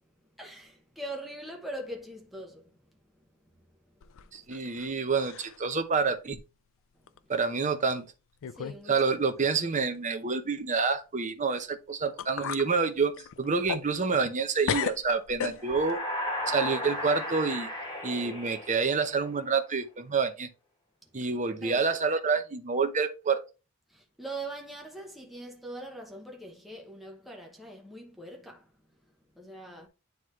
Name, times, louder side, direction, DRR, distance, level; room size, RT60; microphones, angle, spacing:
voice 1, 0.4-2.6 8.6-9.0 15.4-15.5 21.6-21.9 23.9-28.6 29.4-29.9, right 1 dB, ahead, 0.9 m, -42 dB
sound 1, 4.0-4.9 5.2-5.7 6.1-6.2 7.1-7.2 7.9-8.0 8.4-8.8 9.1-9.2 11.7-11.8 12.2-12.7 13.1-14.4 14.7-16.0, left 8 dB, 60° left, 0.4 m, -35 dB
voice 2, 4.3-6.4 7.3-8.0 8.9-16.0 16.5-17.7 18.0-20.5 21.1-23.4, right 4 dB, 35° right, 0.8 m, -28 dB
sound 2, 15.5-19.4, left 1 dB, 20° left, 2.6 m, -35 dB
9.3 x 3.6 x 3.1 m
head